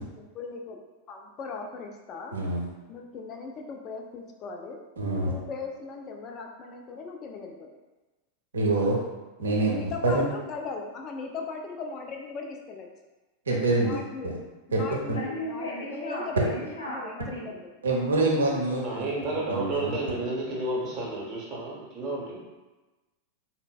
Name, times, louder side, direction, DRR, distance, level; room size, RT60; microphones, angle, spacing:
voice 1, 0.1-0.8 1.1-2.4 2.9-4.8 5.3-7.7 9.7-12.9 13.7-14.4 14.7-17.7, left 4 dB, 30° left, 2 dB, 0.4 m, -38 dB
voice 2, 2.3-2.6 5.0-5.3 8.5-9.0 9.4-10.2 13.5-13.9 14.2-14.3 14.7-14.8 17.8-19.1 19.5-19.9, right 2 dB, 70° right, -2 dB, 0.6 m, -25 dB
voice 3, 15.2-17.5, left 1 dB, 75° left, -5 dB, 0.6 m, -35 dB
voice 4, 18.8-22.4, right 2 dB, 35° right, -4 dB, 0.8 m, -31 dB
3.8 x 2.0 x 2.2 m, 1.1 s
figure-of-eight pair, 90°, 0 cm